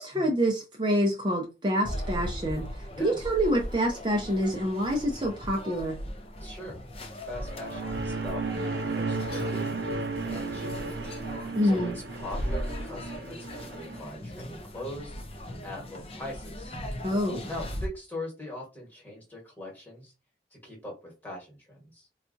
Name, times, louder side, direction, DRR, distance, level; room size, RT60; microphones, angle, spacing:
voice 1, 0.0-6.0 11.5-12.0 17.0-17.4, equal, 25° right, -1 dB, 0.5 m, -27 dB
sound 1, 1.8-17.9, equal, 35° left, 0.5 m, -38 dB
voice 2, 6.4-6.8 7.3-11.0 11.3-16.8 17.5-20.1 20.5-22.1, left 1 dB, 10° left, -3 dB, 1.3 m, -41 dB
sound 2, 7.4-14.0, right 3 dB, 85° right, 0.7 m, -34 dB
4.0 x 2.3 x 2.6 m, 0.29 s
head